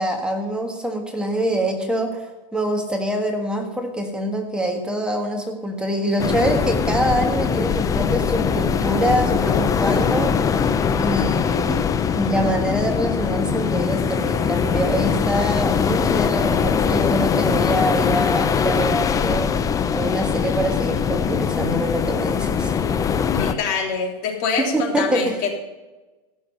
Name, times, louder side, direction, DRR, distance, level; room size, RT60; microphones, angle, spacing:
voice 1, 0.0-2.3 2.5-10.6 10.9-11.8 12.1-19.5 19.9-22.7 24.6-25.4, right 1 dB, 5° right, 3 dB, 1.5 m, -24 dB
sound 1, 6.2-23.5, left 7 dB, 15° left, 0.5 m, -21 dB
voice 2, 23.3-25.3, left 5 dB, 45° left, 1 dB, 3.2 m, -25 dB
15.5 x 6.6 x 5.5 m, 1.2 s
hypercardioid pair, 125°, 20 cm